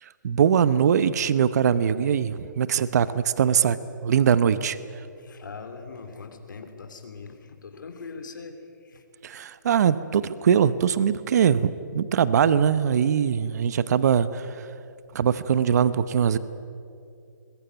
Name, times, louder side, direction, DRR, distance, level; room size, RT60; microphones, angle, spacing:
voice 1, 0.2-3.8 4.0-4.8 9.2-14.7 15.1-16.4, right 8 dB, 55° right, 15 dB, 1.0 m, -22 dB
voice 2, 5.2-9.0, left 4 dB, 75° left, 5 dB, 3.1 m, -41 dB
21.5 x 21.5 x 9.3 m, 2.5 s
hypercardioid pair, 150°, 11 cm